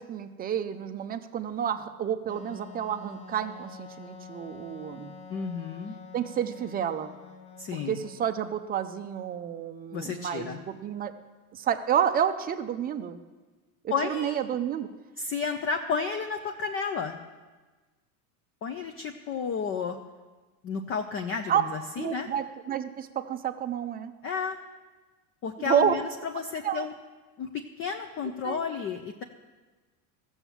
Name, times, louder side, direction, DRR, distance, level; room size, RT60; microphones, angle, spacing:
voice 1, 0.0-5.1 6.1-7.1 7.9-11.1 11.5-13.2 13.8-14.9 21.5-21.6 22.0-24.1 25.7-25.9 26.6-26.9 28.4-28.6, right 9 dB, 20° right, 9 dB, 0.5 m, -30 dB
Wind instrument woodwind instrument, 2.3-8.7, left 6 dB, 60° left, 1.5 m, -47 dB
voice 2, 5.3-6.0 7.6-8.0 9.9-10.6 13.9-14.4 15.2-17.2 18.6-20.0 20.6-22.3 24.2-24.6 25.4-26.9 27.4-29.2, left 5 dB, 30° left, 5 dB, 0.6 m, -32 dB
14.5 x 7.1 x 7.1 m, 1.3 s
supercardioid pair, 140°, 44 cm